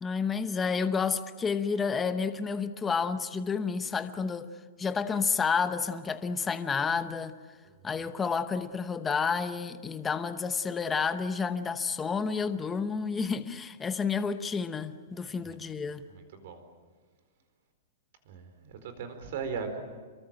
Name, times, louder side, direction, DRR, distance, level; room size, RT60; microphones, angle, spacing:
voice 1, 0.0-4.5 4.8-7.4 7.8-16.1, left 5 dB, 10° left, 0.8 m, -30 dB
voice 2, 7.6-8.1 16.1-16.6 18.3-19.8, right 5 dB, 45° right, 4.4 m, -39 dB
27.5 x 23.0 x 8.9 m
supercardioid pair, 180°, 0 cm